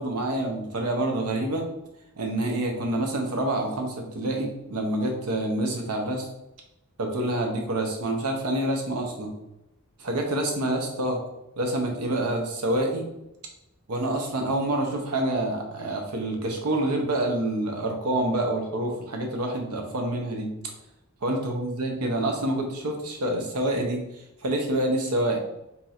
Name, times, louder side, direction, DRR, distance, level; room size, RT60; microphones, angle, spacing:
voice 1, 0.0-1.7 2.2-6.3 7.0-9.3 10.0-11.2 11.6-13.1 13.9-20.5 21.2-24.0 24.4-25.4, right 1 dB, 85° right, 2 dB, 0.7 m, -27 dB
2.8 x 2.4 x 4.1 m, 0.89 s
head